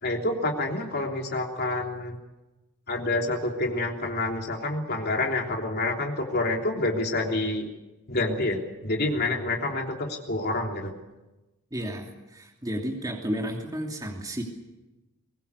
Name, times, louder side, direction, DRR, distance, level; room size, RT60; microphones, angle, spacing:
voice 1, 0.0-2.2 2.9-7.7 8.1-10.9, left 2 dB, 45° left, 2 dB, 3.4 m, -28 dB
voice 2, 11.7-14.4, equal, 15° right, 1 dB, 2.8 m, -32 dB
23.0 x 19.5 x 8.3 m, 1.0 s
head